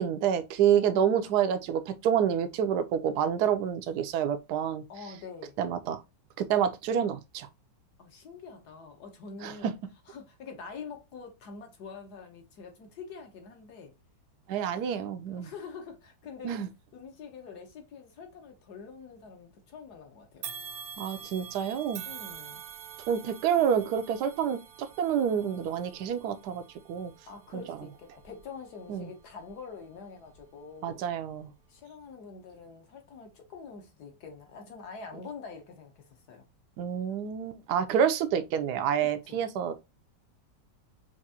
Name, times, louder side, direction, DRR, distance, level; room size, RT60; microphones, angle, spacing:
voice 1, 0.0-4.8 5.6-6.0 6.4-7.5 9.4-9.7 14.5-15.5 16.4-16.7 21.0-22.0 23.1-26.6 26.9-27.1 27.5-27.6 28.9-29.1 30.8-31.5 36.8-39.8, right 8 dB, 70° right, 1.1 m, -28 dB
voice 2, 0.7-1.3 4.9-5.6 8.0-9.7 10.1-13.9 15.3-16.7 16.9-20.5 22.0-22.6 27.3-31.0 31.7-36.4 39.0-39.4, left 5 dB, 60° left, 1.5 m, -45 dB
sound 1, 20.4-29.7 30.2-30.4 31.4-31.5, right 8 dB, 90° right, 1.5 m, -46 dB
5.9 x 2.6 x 2.8 m
omnidirectional pair, 2.0 m